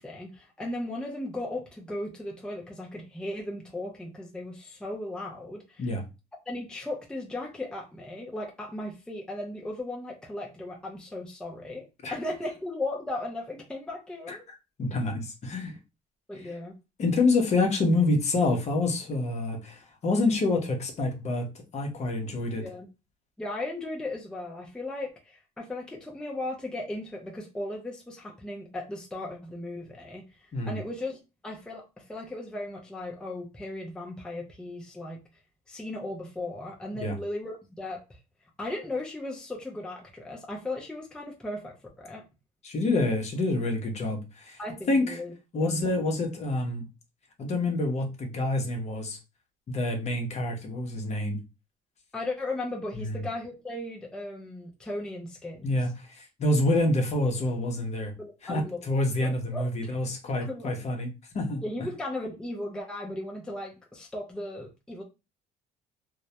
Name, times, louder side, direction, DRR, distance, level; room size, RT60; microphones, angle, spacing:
voice 1, 0.0-5.9 6.5-11.8 12.1-14.4 16.3-16.7 22.6-22.9 23.4-30.2 30.7-35.2 35.7-38.2 38.6-42.2 44.6-45.3 45.6-45.8 52.1-55.8 58.2-58.8 59.2-59.9 60.5-60.7 61.6-65.0, left 2 dB, 5° left, 0.5 m, -36 dB
voice 2, 14.3-15.8 16.4-16.6 17.0-22.6 30.5-30.8 36.9-37.2 42.6-45.2 45.5-46.9 47.4-49.2 49.7-51.4 52.9-53.2 55.6-58.1 58.4-61.1 61.3-61.6, left 2 dB, 40° left, 0.7 m, -27 dB
2.2 x 2.1 x 2.8 m
cardioid pair, 110°, 17 cm